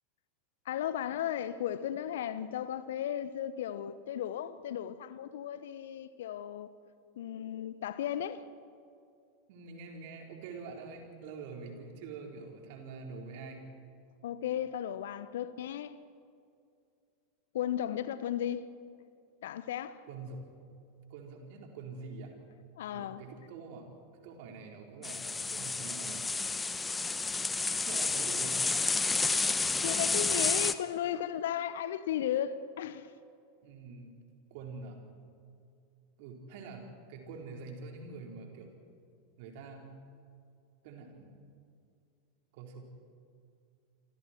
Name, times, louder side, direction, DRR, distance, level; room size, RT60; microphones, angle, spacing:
voice 1, 0.6-6.7 7.2-8.4 14.2-15.9 17.5-18.7 19.4-20.0 22.8-23.2 29.8-33.1, left 10 dB, 65° left, 1.0 m, -35 dB
voice 2, 9.5-13.7 20.1-20.5 21.1-22.3 22.9-23.9 24.2-26.3 27.9-28.8 33.6-34.1 34.5-35.0 36.2-38.7 39.4-39.9 40.8-41.3 42.5-42.8, right 4 dB, 55° right, 4.4 m, -45 dB
sound 1, 25.0-30.7, left 4 dB, 15° left, 1.1 m, -30 dB
28.0 x 26.0 x 4.6 m
figure-of-eight pair, 85°, 0 cm